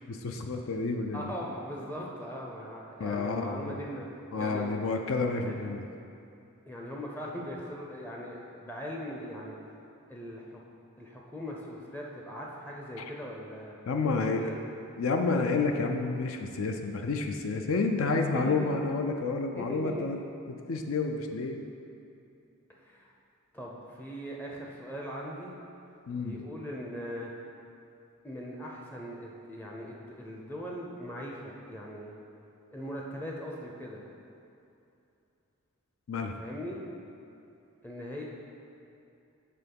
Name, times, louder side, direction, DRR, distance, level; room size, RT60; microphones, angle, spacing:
voice 1, 0.1-1.3 3.0-3.8 4.3-5.9 13.0-13.1 13.9-14.5 15.0-20.2 20.5-21.6 26.1-26.4 36.1-36.3, left 3 dB, 65° left, 4 dB, 0.4 m, -30 dB
voice 2, 1.1-4.0 4.4-4.7 5.3-5.6 6.7-9.5 10.1-10.6 11.0-13.7 14.3-14.6 18.3-18.7 19.5-19.9 22.8-23.1 23.5-25.6 26.2-27.3 28.2-32.1 32.7-34.0 36.4-36.8 37.8-38.2, equal, 10° left, -2 dB, 0.5 m, -40 dB
6.8 x 3.6 x 5.3 m, 2.7 s
head